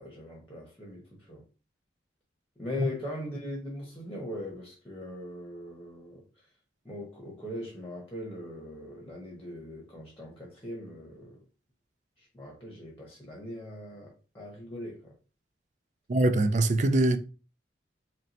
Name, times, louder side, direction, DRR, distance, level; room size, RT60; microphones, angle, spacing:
voice 1, 0.0-1.4 2.6-6.4 6.8-11.4 12.2-15.2, left 1 dB, 15° left, 0.9 m, -40 dB
voice 2, 16.1-17.2, right 2 dB, 40° right, 0.4 m, -23 dB
3.2 x 2.9 x 4.0 m
head